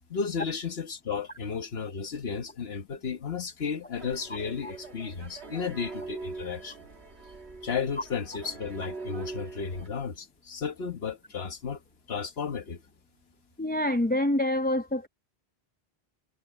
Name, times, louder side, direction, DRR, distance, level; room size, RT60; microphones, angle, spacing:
voice 1, 0.1-6.8 7.6-11.8 12.1-12.8, left 6 dB, 70° left, 1.4 m, -33 dB
sound 1, 3.9-9.9, right 3 dB, 80° right, 2.2 m, -42 dB
voice 2, 13.6-15.1, left 1 dB, 10° left, 0.5 m, -26 dB
omnidirectional pair, 1.1 m